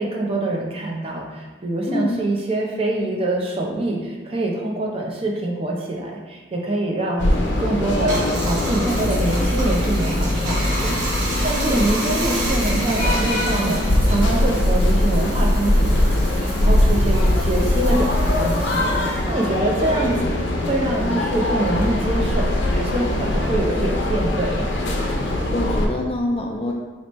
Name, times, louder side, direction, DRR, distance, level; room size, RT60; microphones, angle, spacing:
voice 1, 0.0-7.3 7.6-8.2 8.4-11.0 11.4-13.8 14.1-20.3 20.7-24.7, right 1 dB, 30° right, -1 dB, 0.5 m, -25 dB
voice 2, 1.9-2.2 11.6-11.8 20.1-20.4 25.3-26.7, left 1 dB, 30° left, 1 dB, 0.3 m, -26 dB
sound 1, 7.2-25.9, left 1 dB, 75° left, 0.6 m, -21 dB
Bathtub (filling or washing), 7.9-20.7 21.0-22.8, right 1 dB, 70° right, 1.0 m, -32 dB
4.2 x 3.0 x 3.0 m, 1.3 s
head